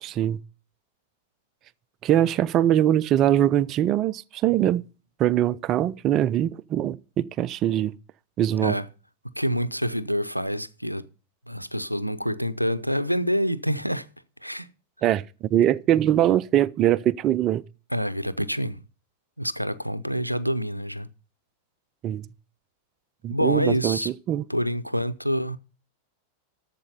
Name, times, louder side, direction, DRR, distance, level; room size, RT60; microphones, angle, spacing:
voice 1, 0.0-0.4 2.0-4.8 5.2-7.9 8.4-8.8 15.0-15.2 15.5-17.6 22.0-22.3 23.2-24.0 24.3-24.4, right 11 dB, 35° right, 0.5 m, -22 dB
voice 2, 9.4-11.0 11.5-14.1 14.4-14.7 17.9-18.8 19.4-21.1 23.3-24.1 24.5-25.6, equal, 90° right, 0.5 m, -27 dB
12.0 x 7.5 x 5.3 m
figure-of-eight pair, 90°, 0 cm